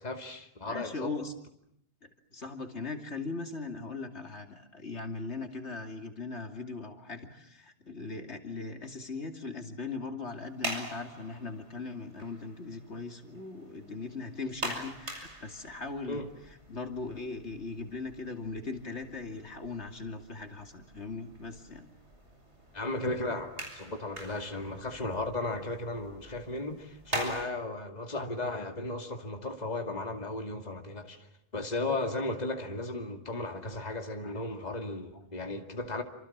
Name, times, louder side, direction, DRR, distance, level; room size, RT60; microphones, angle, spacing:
voice 1, 0.0-1.1 16.1-16.3 22.7-36.0, left 2 dB, 35° left, 2.6 m, -35 dB
voice 2, 0.6-1.3 2.0-16.3 16.7-21.9 33.4-33.6 34.2-34.4, left 3 dB, 70° left, 2.9 m, -39 dB
sound 1, 10.3-27.4, right 1 dB, 75° right, 6.6 m, -44 dB
28.5 x 26.5 x 7.4 m
omnidirectional pair, 1.2 m